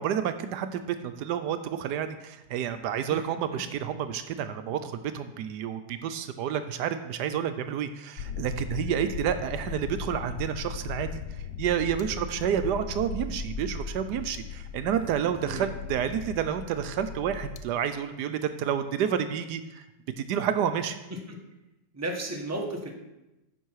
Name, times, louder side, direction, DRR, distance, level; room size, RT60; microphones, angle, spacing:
voice 1, 0.0-11.2 11.6-19.8 20.2-21.0, right 9 dB, 80° right, 10 dB, 1.2 m, -30 dB
sound 1, 8.2-17.6, left 5 dB, 80° left, 1.2 m, -37 dB
voice 2, 21.9-22.9, right 2 dB, 10° right, 1 dB, 1.1 m, -33 dB
10.0 x 6.6 x 4.7 m, 0.97 s
omnidirectional pair, 1.8 m